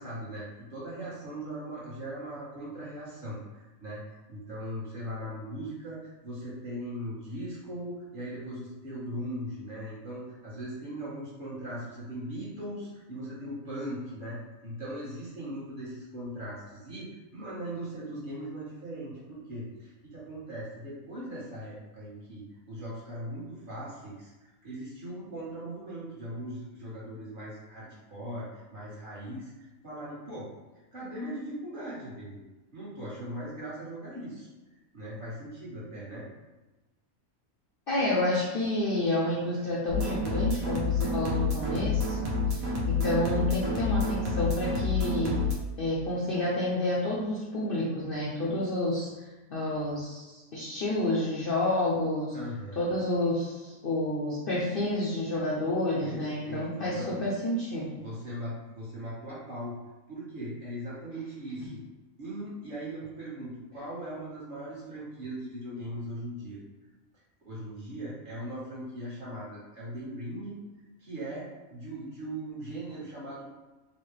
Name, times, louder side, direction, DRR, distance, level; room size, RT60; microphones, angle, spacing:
voice 1, 0.0-4.0 4.3-29.5 29.8-30.5 30.9-32.4 32.7-36.3 52.3-53.0 56.0-57.2 58.0-59.7 60.1-61.8 62.2-66.6 67.4-70.6 71.0-73.4, right 1 dB, 40° right, -8 dB, 1.2 m, -39 dB
voice 2, 37.9-45.4 45.8-49.1 49.5-52.4 52.8-58.0, left 1 dB, 55° left, -6 dB, 0.6 m, -29 dB
sound 1, 39.9-45.5, left 3 dB, 80° right, 1.2 m, -29 dB
4.0 x 2.1 x 3.2 m, 1.1 s
omnidirectional pair, 1.5 m